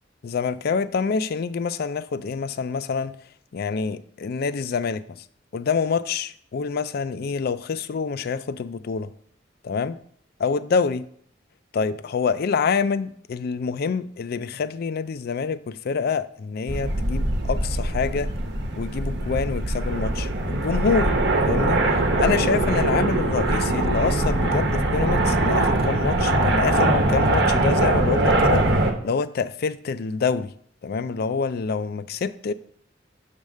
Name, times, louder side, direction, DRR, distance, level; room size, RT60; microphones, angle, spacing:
voice 1, 0.2-3.2 3.5-5.2 5.5-9.1 9.6-10.0 10.4-11.1 11.7-18.3 18.8-21.1 21.5-28.7 29.0-30.5 30.8-32.5, left 5 dB, 55° left, 0.4 m, -26 dB
sound 1, 16.7-28.9, right 2 dB, 65° right, 1.0 m, -22 dB
7.3 x 3.5 x 6.4 m
head